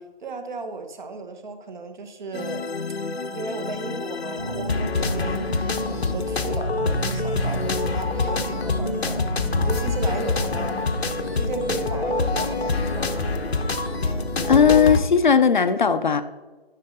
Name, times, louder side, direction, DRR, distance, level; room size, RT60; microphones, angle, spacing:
voice 1, 0.2-2.6 3.3-5.6 5.9-9.2 9.5-10.8 11.3-13.3, right 3 dB, 50° right, 1.2 m, -35 dB
sound 1, 2.3-15.0, left 3 dB, 85° left, 1.0 m, -26 dB
sound 2, 4.4-15.0, left 1 dB, 5° left, 0.5 m, -31 dB
voice 2, 14.5-16.2, left 6 dB, 50° left, 0.6 m, -17 dB
10.5 x 6.5 x 3.9 m
figure-of-eight pair, 155°, 31 cm